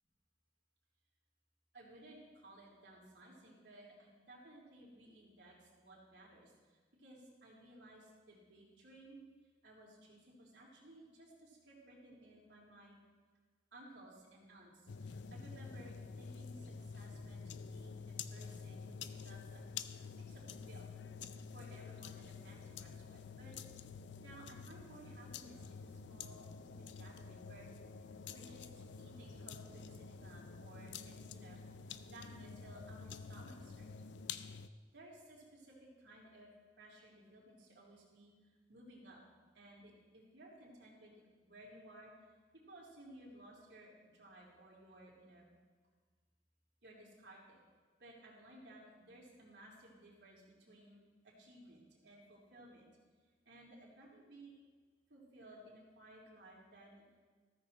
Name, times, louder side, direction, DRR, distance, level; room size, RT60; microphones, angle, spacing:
voice 1, 1.7-9.2 9.6-13.0 13.7-19.6 20.2-20.9 21.3-23.6 24.2-27.7 28.3-31.6 31.8-33.9 34.9-38.3 38.7-39.2 39.5-41.1 41.4-42.1 42.7-45.5 46.8-47.6 48.0-52.9 53.5-54.5 55.1-57.0, right 1 dB, 75° right, -4 dB, 3.8 m, -58 dB
sound 1, 14.9-34.7, left 5 dB, 85° left, 0.5 m, -49 dB
14.5 x 13.5 x 3.2 m, 1.5 s
head